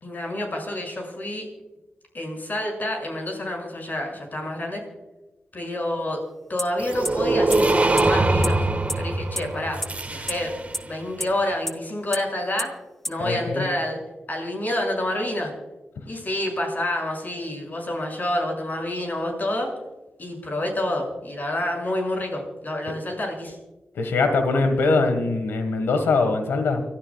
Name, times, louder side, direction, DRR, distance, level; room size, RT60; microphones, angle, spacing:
voice 1, 0.0-1.5 2.1-4.8 5.5-6.2 6.5-8.7 8.9-9.8 10.1-10.5 10.8-12.8 13.1-14.0 14.3-15.5 16.1-19.7 20.2-23.6, left 1 dB, 50° left, 1 dB, 6.4 m, -28 dB
sound 1, 6.6-6.7 7.0-7.1 7.5-7.6 8.0-8.1 8.4-8.5 8.9-9.0 9.4-9.5 9.8-9.9 10.3-10.4 10.7-10.8 11.2-11.3 11.7-11.8 12.1-12.2 12.6-12.7 13.0-13.1, equal, 10° left, 0.7 m, -26 dB
sound 2, 6.8-10.8, right 2 dB, 40° right, 1.5 m, -23 dB
voice 2, 13.2-13.7 23.9-26.8, left 3 dB, 90° left, 6 dB, 1.6 m, -22 dB
29.5 x 12.5 x 2.4 m, 1.1 s
cardioid pair, 40°, 4 cm